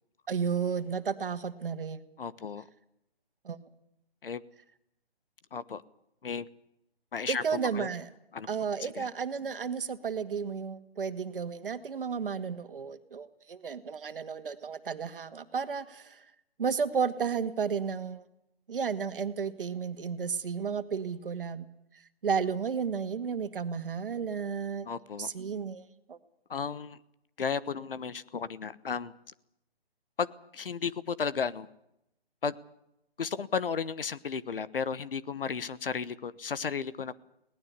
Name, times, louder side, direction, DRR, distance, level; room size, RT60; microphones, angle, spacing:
voice 1, 0.3-2.0 3.4-3.6 7.3-8.1 8.5-16.3 16.6-18.3 18.7-21.7 22.2-24.9 25.2-26.2, right 6 dB, 60° right, 10 dB, 2.0 m, -33 dB
voice 2, 2.2-2.6 4.2-4.4 5.5-5.8 6.2-6.5 7.1-7.4 7.7-7.9 8.3-8.5 8.8-9.1 24.8-25.3 26.5-27.0 27.4-29.1 30.2-31.7 32.4-32.6 33.2-37.2, left 6 dB, 60° left, 17 dB, 1.3 m, -34 dB
21.5 x 18.5 x 8.3 m, 0.81 s
hypercardioid pair, 160°, 31 cm